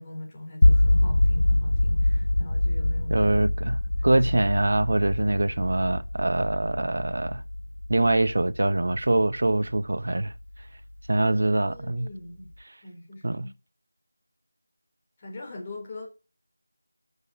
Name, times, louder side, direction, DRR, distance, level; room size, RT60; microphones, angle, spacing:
voice 1, 0.0-4.4 11.3-12.5 12.8-13.5 15.2-16.1, left 2 dB, 15° left, 3.8 m, -42 dB
sound 1, 0.6-10.6, left 1 dB, 60° left, 1.1 m, -25 dB
voice 2, 3.1-7.4 7.9-10.3 11.1-12.1 13.2-13.5, right 2 dB, 50° right, 1.0 m, -24 dB
12.5 x 7.0 x 6.1 m
figure-of-eight pair, 175°, 0 cm